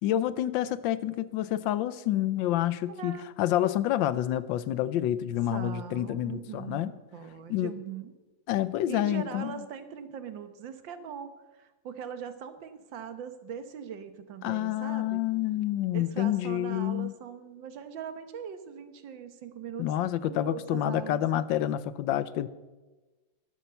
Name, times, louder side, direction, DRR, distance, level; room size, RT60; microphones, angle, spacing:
voice 1, 0.0-6.9 7.5-7.7 8.5-9.6 14.4-17.1 19.8-22.5, left 12 dB, 90° left, 1.4 m, -28 dB
voice 2, 2.9-3.3 5.5-8.2 8.9-15.2 15.9-21.2, right 8 dB, 85° right, 1.9 m, -41 dB
12.0 x 11.5 x 6.9 m
omnidirectional pair, 2.0 m